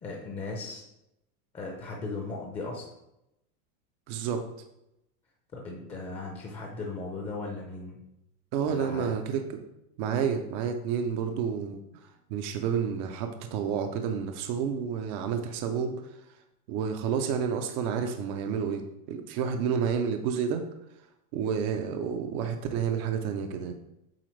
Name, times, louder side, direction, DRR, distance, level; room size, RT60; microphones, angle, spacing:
voice 1, 0.0-0.8 1.5-2.9 5.5-8.0 8.6-9.2, left 3 dB, 15° left, -1 dB, 0.6 m, -37 dB
voice 2, 4.1-4.4 8.5-9.6 10.0-11.8 12.3-16.0 16.7-20.6 21.3-23.7, right 7 dB, 35° right, 5 dB, 0.4 m, -30 dB
7.8 x 4.2 x 3.1 m, 0.86 s
supercardioid pair, 150°, 45 cm